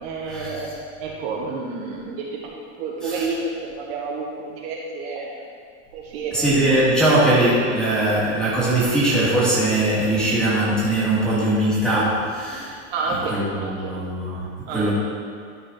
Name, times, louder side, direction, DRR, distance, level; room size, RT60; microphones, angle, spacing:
voice 1, 0.0-0.7 1.0-5.3 5.9-6.9 12.9-13.9 14.7-14.9, right 3 dB, 55° right, -2 dB, 1.3 m, -30 dB
voice 2, 6.3-12.8 13.1-14.9, right 1 dB, ahead, -10 dB, 2.3 m, -21 dB
12.5 x 4.9 x 4.0 m, 2.1 s
supercardioid pair, 165°, 36 cm